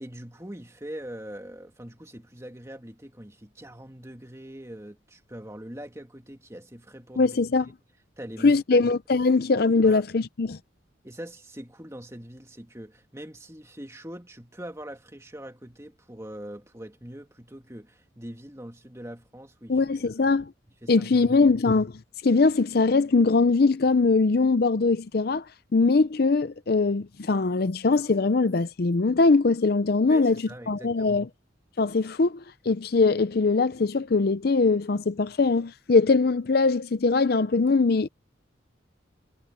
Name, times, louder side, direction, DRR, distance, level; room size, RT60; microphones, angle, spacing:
voice 1, 0.0-7.4 8.2-8.9 9.8-10.0 11.0-20.4 20.8-21.3 30.1-31.3, right 1 dB, 15° right, 2.2 m, -42 dB
voice 2, 7.2-7.7 8.4-10.6 19.7-20.5 20.9-21.9 22.2-25.4 25.7-30.4 30.7-31.3 31.8-38.1, left 3 dB, 50° left, 0.5 m, -22 dB
head